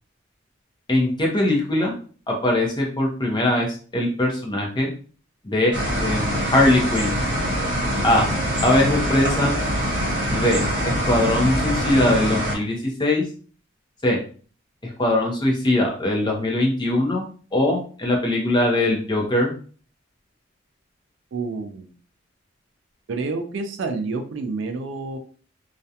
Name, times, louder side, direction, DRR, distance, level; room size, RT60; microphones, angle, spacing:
voice 1, 0.9-1.9 2.3-3.7 3.9-4.9 5.4-5.7 6.0-7.1 8.0-8.3 8.6-9.6 10.3-13.2 14.0-14.2 15.0-17.2 17.5-19.5, left 1 dB, 20° left, 0 dB, 0.6 m, -21 dB
sound 1, 5.7-12.5, equal, 40° right, 1.1 m, -24 dB
voice 2, 21.3-21.9 23.1-25.2, right 3 dB, 65° right, 6 dB, 0.4 m, -28 dB
2.4 x 2.1 x 2.7 m, 0.41 s
head